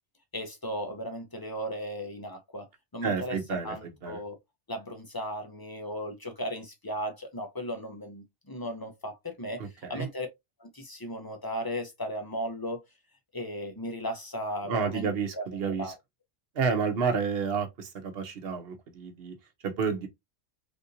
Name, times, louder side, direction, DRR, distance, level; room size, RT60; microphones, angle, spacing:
voice 1, 0.3-2.7 2.9-3.4 3.6-4.4 4.7-10.3 10.6-12.8 13.3-15.1 15.3-15.4 15.8-15.9, equal, 30° left, 0.4 m, -36 dB
voice 2, 3.0-4.2 9.6-10.1 14.7-15.9 16.5-19.3 19.6-20.1, right 5 dB, 60° right, 0.9 m, -30 dB
3.5 x 2.6 x 2.6 m
omnidirectional pair, 1.3 m